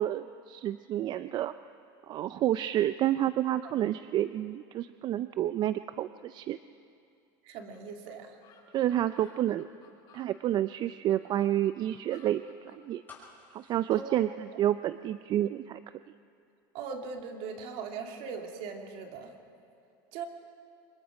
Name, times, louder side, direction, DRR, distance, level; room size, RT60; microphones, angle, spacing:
voice 1, 0.0-1.5 2.1-6.6 8.7-9.7 10.1-13.0 13.5-15.8, right 12 dB, 40° right, 13 dB, 0.4 m, -29 dB
voice 2, 7.4-8.4 13.9-14.2 16.7-19.3 20.1-20.2, right 5 dB, 60° right, 3 dB, 2.6 m, -40 dB
sound 1, 7.7-7.8 8.1-8.2 8.4-10.3 10.8-12.8, left 7 dB, 45° left, 6.3 m, -58 dB
sound 2, 13.1-15.1 15.4-15.5, left 4 dB, 15° left, 5.9 m, -53 dB
25.0 x 21.5 x 5.0 m, 2.6 s
supercardioid pair, 120°, 11 cm